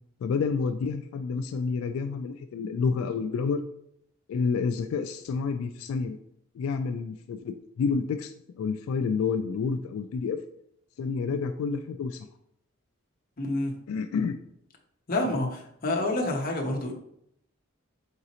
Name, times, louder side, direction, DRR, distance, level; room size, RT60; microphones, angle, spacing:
voice 1, 0.2-3.6 4.3-6.2 6.5-10.4 11.0-12.3 13.9-14.4 15.3-15.5, left 5 dB, 85° left, 9 dB, 0.3 m, -29 dB
voice 2, 13.4-13.7 15.1-16.9, left 1 dB, 45° left, 1 dB, 0.7 m, -28 dB
4.0 x 3.7 x 2.9 m, 0.73 s
head